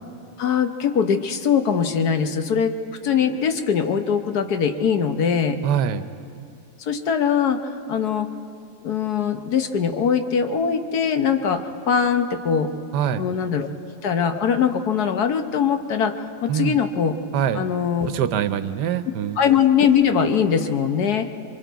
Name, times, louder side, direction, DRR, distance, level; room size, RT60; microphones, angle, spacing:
voice 1, 0.4-2.8 3.0-5.6 6.8-7.6 7.9-8.3 8.8-12.7 13.2-13.7 14.0-16.1 16.4-17.2 17.5-18.1 19.4-21.3, left 7 dB, 70° left, 7 dB, 1.5 m, -21 dB
voice 2, 5.6-6.0 12.9-13.2 16.5-16.8 17.3-17.6 18.1-19.4, right 9 dB, 85° right, 12 dB, 1.4 m, -23 dB
27.0 x 23.0 x 4.6 m, 2.5 s
omnidirectional pair, 1.7 m